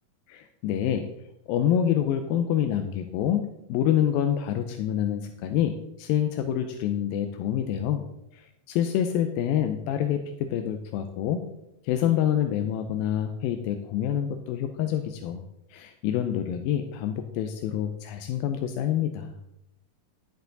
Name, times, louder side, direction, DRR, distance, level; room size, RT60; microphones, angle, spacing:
voice 1, 0.3-1.1 1.5-8.1 8.3-11.4 11.8-15.4 15.7-19.4, left 10 dB, 85° left, 6 dB, 2.5 m, -27 dB
10.5 x 10.5 x 3.9 m, 0.83 s
omnidirectional pair, 4.1 m